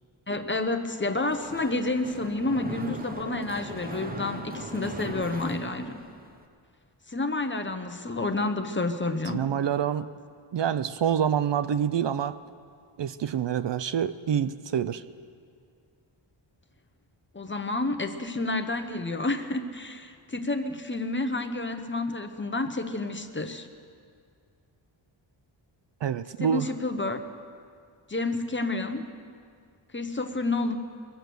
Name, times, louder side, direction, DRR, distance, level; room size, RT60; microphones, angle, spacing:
voice 1, 0.3-6.0 7.1-9.5 17.3-23.7 26.4-27.2 28.1-29.1 29.9-30.7, left 2 dB, 25° left, 6 dB, 0.8 m, -29 dB
Mechanisms, 1.3-6.4, right 2 dB, 20° right, 0.8 m, -39 dB
voice 2, 9.3-10.1 10.5-12.4 13.0-15.0 26.0-26.7, right 8 dB, 60° right, 13 dB, 0.5 m, -27 dB
22.5 x 7.7 x 6.8 m, 2.3 s
wide cardioid pair, 120°, 49 cm